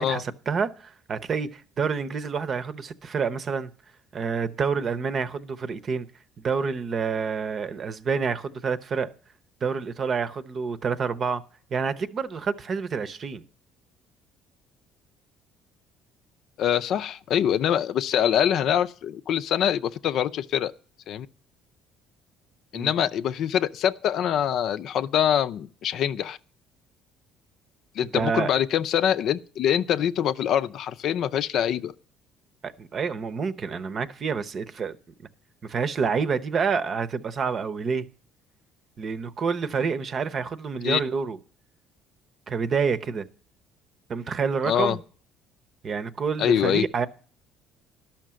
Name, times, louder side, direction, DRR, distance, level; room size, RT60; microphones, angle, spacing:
voice 1, 0.0-3.7 4.1-6.1 6.4-9.1 9.6-11.4 11.7-13.4 22.7-22.9 28.1-28.5 32.6-35.0 35.6-38.1 39.0-41.4 42.5-43.3 44.1-45.0 45.8-47.1, right 5 dB, 45° right, 0.8 m, -28 dB
voice 2, 16.6-20.7 21.1-21.3 22.7-26.4 28.0-31.9 40.8-41.0 44.6-45.0 46.4-46.8, left 9 dB, 65° left, 0.5 m, -24 dB
12.0 x 5.9 x 7.5 m
supercardioid pair, 80°, 0 cm